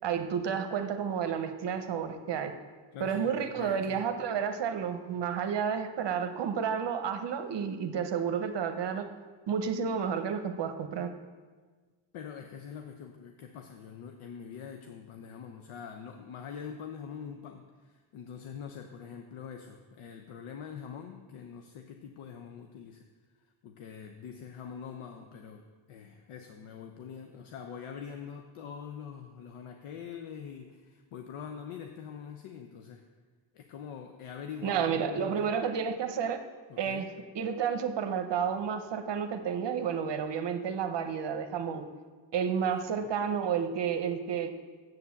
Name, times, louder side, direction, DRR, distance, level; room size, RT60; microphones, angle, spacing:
voice 1, 0.0-2.5 3.0-9.0 9.5-11.1 34.6-36.4 36.8-37.1 37.3-41.8 42.3-44.5, right 7 dB, 60° right, 7 dB, 0.9 m, -31 dB
voice 2, 2.9-4.0 12.1-23.1 23.4-33.1 33.5-35.5 36.7-37.1 42.8-43.1, left 7 dB, 85° left, 5 dB, 0.8 m, -44 dB
8.0 x 6.8 x 7.1 m, 1.5 s
cardioid pair, 105°, 48 cm